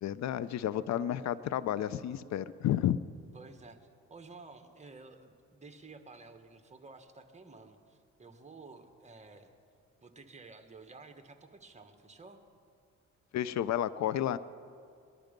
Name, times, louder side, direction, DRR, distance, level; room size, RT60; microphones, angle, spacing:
voice 1, 0.0-3.0 13.3-14.4, left 11 dB, 65° left, 16 dB, 0.5 m, -31 dB
voice 2, 3.3-3.8 4.1-9.5 10.0-12.4, right 3 dB, 25° right, 6 dB, 1.4 m, -52 dB
21.5 x 12.0 x 5.2 m, 2.4 s
cardioid pair, 90°, 30 cm